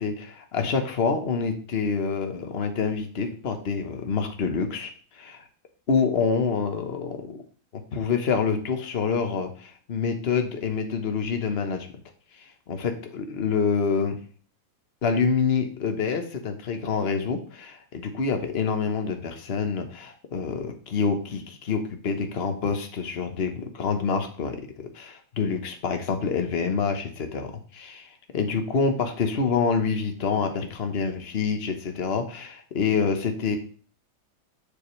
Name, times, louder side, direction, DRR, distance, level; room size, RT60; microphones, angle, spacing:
voice 1, 0.0-4.9 5.2-5.4 5.9-7.4 7.7-11.9 12.7-14.2 15.0-33.6, left 5 dB, 40° left, 6 dB, 1.1 m, -27 dB
7.2 x 7.1 x 3.3 m, 0.42 s
omnidirectional pair, 2.2 m